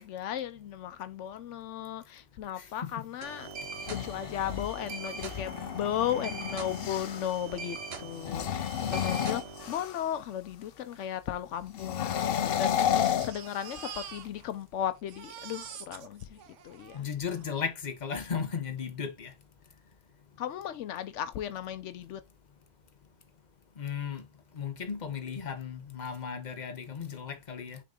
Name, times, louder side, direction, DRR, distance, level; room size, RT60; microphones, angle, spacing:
voice 1, 0.0-3.5 3.9-17.1 20.4-22.2, left 10 dB, 85° left, 0.9 m, -36 dB
voice 2, 2.6-3.0 16.9-19.3 23.8-24.2 24.5-27.8, left 6 dB, 40° left, 1.1 m, -35 dB
sound 1, 3.2-9.7, right 4 dB, 60° right, 1.5 m, -42 dB
sound 2, 3.6-7.4 8.1-10.2 11.7-14.0, left 9 dB, 60° left, 0.7 m, -32 dB
Crying sobbing, 10.6-10.7 10.9-11.0 11.8-14.7 14.9-17.5 18.3-18.4 18.8-18.9, right 8 dB, 80° right, 1.1 m, -46 dB
6.4 x 3.9 x 3.7 m
omnidirectional pair, 1.2 m